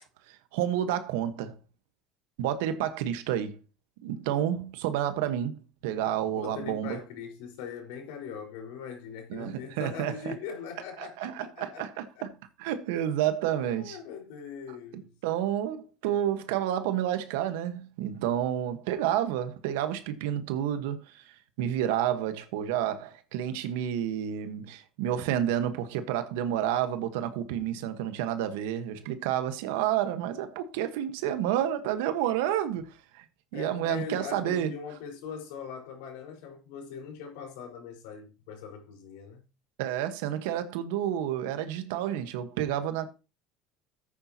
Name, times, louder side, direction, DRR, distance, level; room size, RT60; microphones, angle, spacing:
voice 1, 0.3-1.6 2.4-3.6 4.0-5.6 5.8-7.0 9.3-10.3 11.0-11.9 12.6-14.0 15.2-21.2 21.6-32.9 33.1-33.2 33.5-34.7 39.8-43.1, right 11 dB, 85° right, 1.2 m, -30 dB
voice 2, 6.3-11.9 12.1-12.3 13.5-15.1 33.5-39.4, left 6 dB, 85° left, 4.6 m, -41 dB
13.5 x 8.8 x 2.9 m
supercardioid pair, 125°, 0 cm